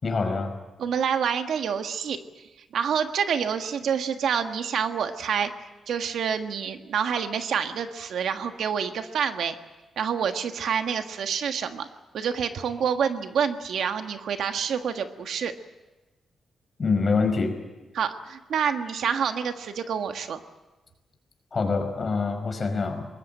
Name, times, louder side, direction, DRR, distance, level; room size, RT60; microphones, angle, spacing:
voice 1, 0.0-0.5 16.8-17.6 21.5-23.1, left 4 dB, 35° left, 5 dB, 5.1 m, -25 dB
voice 2, 0.8-2.2 2.7-5.5 5.9-9.5 10.0-11.9 12.1-15.5 17.9-20.4, right 7 dB, 80° right, 7 dB, 1.5 m, -27 dB
24.5 x 20.5 x 8.9 m, 1.2 s
wide cardioid pair, 135°, 0 cm